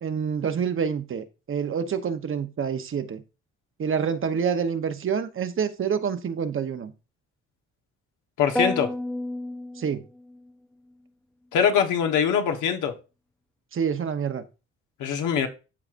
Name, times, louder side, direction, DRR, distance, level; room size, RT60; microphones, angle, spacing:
voice 1, 0.0-3.2 3.8-6.9 9.7-10.0 13.7-14.4, right 7 dB, 45° right, 0.9 m, -27 dB
voice 2, 8.4-8.9 11.5-12.9 15.0-15.5, left 7 dB, 85° left, 1.3 m, -23 dB
sound 1, 8.6-10.5, left 1 dB, 5° left, 0.4 m, -31 dB
13.5 x 4.8 x 2.5 m
cardioid pair, 90°, 30 cm